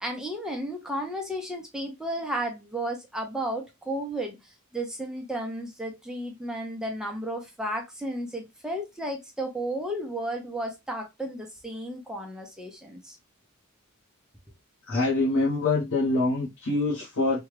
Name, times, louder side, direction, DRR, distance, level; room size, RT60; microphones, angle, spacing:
voice 1, 0.0-13.2, right 1 dB, 5° right, 0.6 m, -33 dB
voice 2, 14.9-17.4, left 2 dB, 85° left, 1.1 m, -25 dB
3.4 x 2.3 x 3.2 m
head